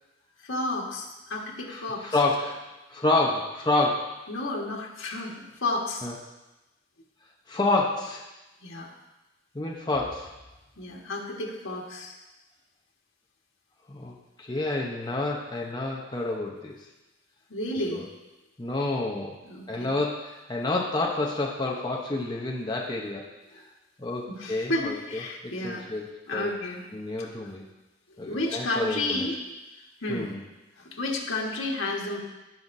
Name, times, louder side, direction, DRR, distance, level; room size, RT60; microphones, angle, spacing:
voice 1, 0.4-2.1 4.3-6.1 8.6-8.9 10.8-12.2 17.5-18.1 19.4-19.9 24.3-25.8 26.3-26.8 28.2-29.3 30.0-30.3 30.8-32.2, left 2 dB, 90° left, -1 dB, 1.6 m, -31 dB
voice 2, 1.7-2.6 2.9-4.2 6.0-6.1 7.5-8.2 9.5-10.3 13.9-16.7 17.9-18.0 18.6-19.4 19.7-23.2 24.0-26.5 26.9-27.6 28.2-29.3 30.1-30.4, left 2 dB, 20° left, -2 dB, 0.9 m, -29 dB
17.0 x 5.7 x 2.7 m, 1.0 s
head